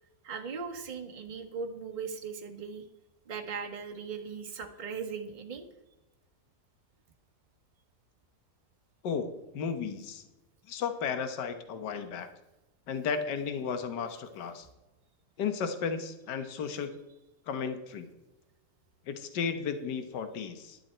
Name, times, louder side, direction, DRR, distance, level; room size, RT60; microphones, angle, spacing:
voice 1, 0.2-2.8 3.3-5.7, right 5 dB, 30° right, 4 dB, 1.2 m, -38 dB
voice 2, 9.0-10.2 10.7-12.3 12.9-14.7 15.4-16.9 17.5-18.1 19.1-20.8, left 6 dB, 70° left, 9 dB, 1.7 m, -34 dB
12.0 x 10.5 x 4.4 m, 1.0 s
omnidirectional pair, 2.0 m